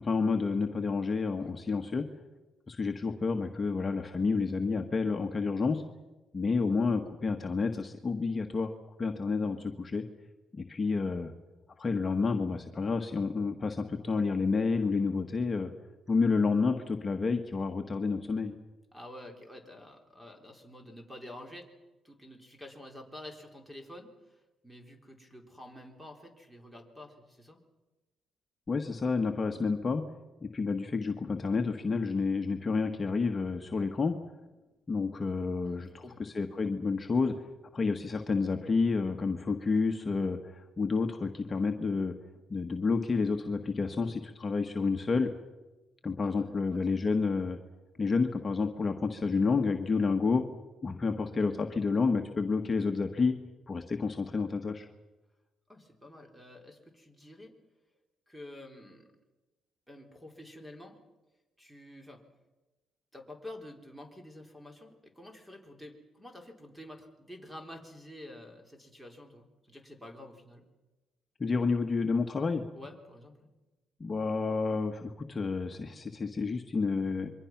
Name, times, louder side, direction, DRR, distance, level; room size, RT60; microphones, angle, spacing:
voice 1, 0.0-2.1 2.7-5.8 6.3-8.7 9.0-10.0 10.5-11.3 11.8-15.7 16.1-18.5 28.7-30.0 30.4-34.2 34.9-37.3 37.7-42.1 42.5-45.3 46.0-47.6 48.0-50.4 50.8-53.3 53.7-54.9 71.4-72.6 74.0-77.3, left 4 dB, 30° left, 4 dB, 1.5 m, -29 dB
voice 2, 1.4-2.0 18.9-21.7 22.0-27.6 35.6-36.3 46.2-46.8 55.7-57.6 58.3-59.1 59.9-61.0 61.6-62.2 63.1-70.7 72.7-73.5, left 1 dB, 5° right, 4 dB, 4.0 m, -49 dB
27.0 x 23.0 x 6.0 m, 1.1 s
cardioid pair, 90°, 0 cm